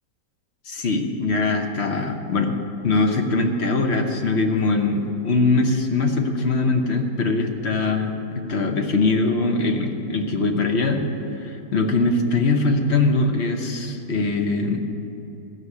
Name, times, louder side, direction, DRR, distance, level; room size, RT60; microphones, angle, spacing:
voice 1, 0.7-2.6 2.8-11.0 11.4-14.8, left 3 dB, 45° left, 4 dB, 1.1 m, -22 dB
14.0 x 6.4 x 8.4 m, 2.9 s
omnidirectional pair, 1.7 m